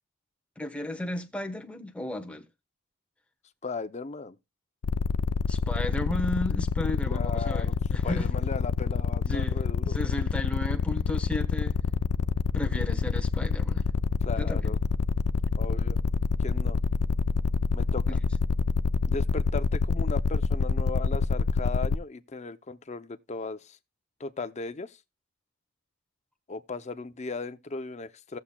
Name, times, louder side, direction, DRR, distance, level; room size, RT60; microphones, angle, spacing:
voice 1, 0.6-2.4 5.5-8.3 9.3-11.9 12.5-13.9 14.3-14.7 18.1-18.2, left 1 dB, 5° left, 1.0 m, -34 dB
voice 2, 3.6-4.4 7.1-7.8 8.0-10.1 14.2-14.8 15.6-16.0 16.4-16.8 17.7-18.2 19.1-23.8 24.2-25.0 26.5-28.4, left 4 dB, 30° left, 0.5 m, -37 dB
sound 1, 4.8-22.0, left 4 dB, 80° left, 0.4 m, -27 dB
17.0 x 7.1 x 2.2 m
head